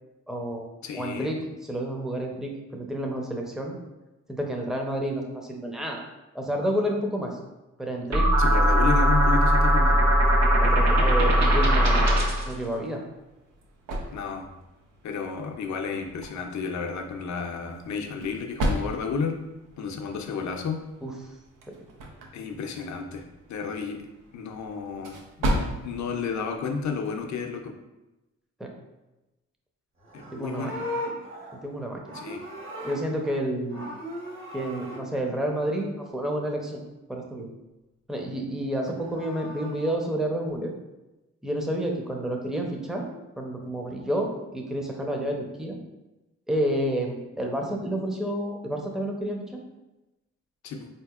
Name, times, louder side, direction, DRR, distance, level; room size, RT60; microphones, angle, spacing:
voice 1, 0.3-0.7 0.9-1.4 1.7-3.8 4.3-6.0 6.3-7.4 7.8-8.3 8.6-8.7 10.6-13.0 21.0-21.1 21.7-21.8 28.6-28.7 30.3-30.7 31.6-32.1 32.8-33.9 34.5-36.8 37.1-37.5 38.1-40.7 41.4-43.1 43.4-45.8 46.5-49.4, right 1 dB, ahead, 1 dB, 0.6 m, -30 dB
voice 2, 0.8-1.3 8.4-10.1 14.1-14.5 15.0-19.4 19.8-20.8 22.3-23.2 23.5-24.1 24.3-27.7 30.1-30.7 32.1-32.4 50.6-50.9, left 5 dB, 65° left, 4 dB, 0.6 m, -32 dB
sound 1, 8.1-12.5, equal, 60° right, 0.9 m, -19 dB
sound 2, 13.0-27.5, equal, 85° right, 0.6 m, -36 dB
Livestock farm animals working animals, 30.0-33.4 33.7-35.0 38.8-40.0, left 1 dB, 40° right, 1.1 m, -38 dB
3.9 x 2.9 x 2.4 m, 1.0 s
cardioid pair, 60°, 31 cm